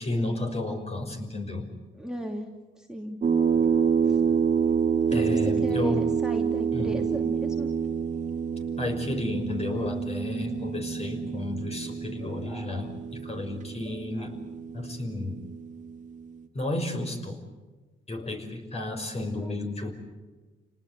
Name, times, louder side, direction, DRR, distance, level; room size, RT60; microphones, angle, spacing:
voice 1, 0.0-1.7 5.1-6.0 6.7-7.0 8.8-14.4 14.7-15.4 16.5-17.4 18.1-19.9, left 2 dB, 30° left, 4 dB, 6.0 m, -32 dB
voice 2, 1.9-2.5 2.8-3.2 4.0-4.2 5.1-7.7, equal, 5° right, 0 dB, 2.9 m, -35 dB
sound 1, 3.2-16.3, right 6 dB, 40° right, 1.9 m, -28 dB
29.5 x 19.5 x 8.1 m, 1.3 s
cardioid pair, 90°, 20 cm